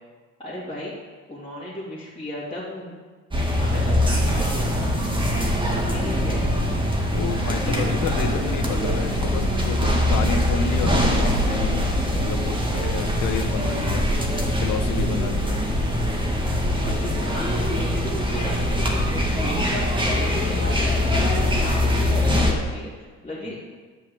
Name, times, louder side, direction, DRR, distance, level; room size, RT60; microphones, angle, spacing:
voice 1, 0.4-0.9 1.3-3.0 3.5-4.9 5.6-6.5 7.6-8.3 9.8-10.0 15.0-15.3 16.8-21.3 21.6-23.6, left 1 dB, 15° left, -9 dB, 2.9 m, -35 dB
sound 1, 3.3-22.5, left 1 dB, 15° right, 1.9 m, -22 dB
voice 2, 5.0-5.6 7.1-14.1 14.6-15.6 23.5-23.6, left 6 dB, 90° left, 7 dB, 1.0 m, -31 dB
10.0 x 5.0 x 7.7 m, 1.4 s
cardioid pair, 90°, 30 cm